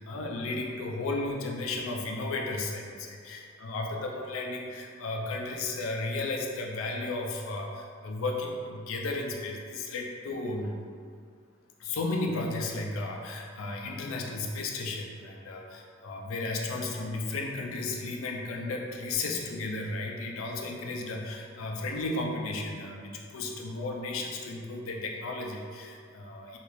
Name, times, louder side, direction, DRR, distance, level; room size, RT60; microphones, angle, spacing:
voice 1, 0.0-10.8 11.8-26.6, left 2 dB, 85° left, 1 dB, 0.4 m, -34 dB
3.0 x 2.4 x 3.1 m, 2.2 s
head